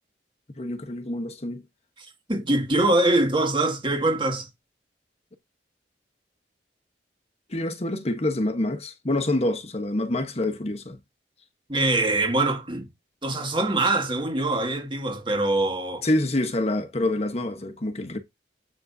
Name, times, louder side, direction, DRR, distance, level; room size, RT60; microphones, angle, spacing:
voice 1, 0.6-1.6 7.5-11.0 16.0-18.2, left 1 dB, 35° left, 1.2 m, -26 dB
voice 2, 2.0-4.5 11.7-12.9 13.2-16.1, right 2 dB, 30° right, 2.1 m, -23 dB
8.5 x 5.9 x 2.7 m
head